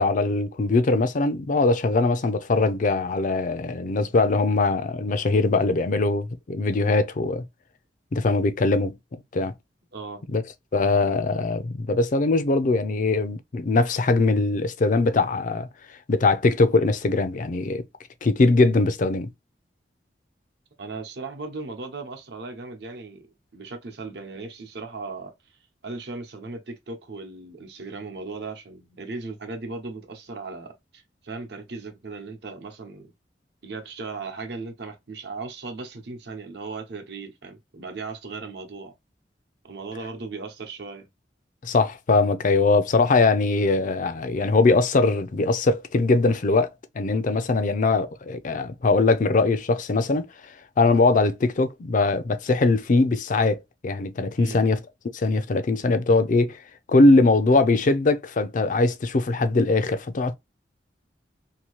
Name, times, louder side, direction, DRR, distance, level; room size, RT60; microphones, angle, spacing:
voice 1, 0.0-7.4 8.1-9.0 9.3-9.5 10.3-10.4 10.7-15.7 16.1-17.8 18.2-19.3 41.6-46.7 47.0-54.8 55.1-56.6 56.9-60.3, left 3 dB, 45° left, 0.4 m, -21 dB
voice 2, 9.9-10.2 20.8-23.2 23.5-25.3 25.8-33.1 33.6-38.9 39.6-41.1 54.4-54.6, right 3 dB, 65° right, 0.9 m, -37 dB
2.9 x 2.7 x 3.0 m
head